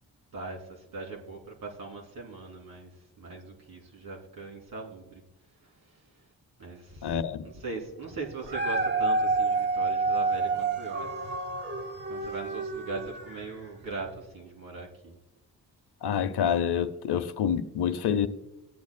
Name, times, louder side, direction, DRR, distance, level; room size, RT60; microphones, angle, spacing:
voice 1, 0.3-5.2 5.6-6.2 6.6-11.1 12.1-15.2, right 3 dB, 65° right, 2.7 m, -40 dB
voice 2, 7.0-7.5 16.0-18.3, left 8 dB, 85° left, 0.7 m, -27 dB
Dog, 8.3-13.6 14.2-14.3, right 3 dB, 30° right, 0.8 m, -29 dB
17.5 x 9.7 x 2.2 m
wide cardioid pair, 160°, 39 cm